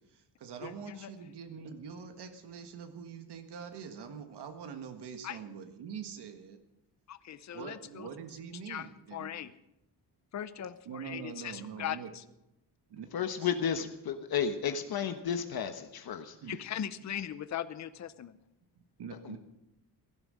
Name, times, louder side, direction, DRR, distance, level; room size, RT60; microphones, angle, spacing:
voice 1, 0.0-6.6 7.5-9.3 10.8-12.1 12.9-13.1 13.3-13.5 16.4-16.6 19.0-19.4, right 6 dB, 80° right, 6 dB, 1.6 m, -44 dB
voice 2, 0.6-1.1 5.2-5.4 7.1-8.1 8.7-9.5 10.3-12.2 16.5-18.4, left 10 dB, 45° left, 14 dB, 0.7 m, -39 dB
voice 3, 13.1-16.3 19.2-19.4, left 7 dB, 65° left, 8 dB, 1.2 m, -32 dB
16.0 x 11.5 x 6.4 m, 0.88 s
wide cardioid pair, 140°, 40 cm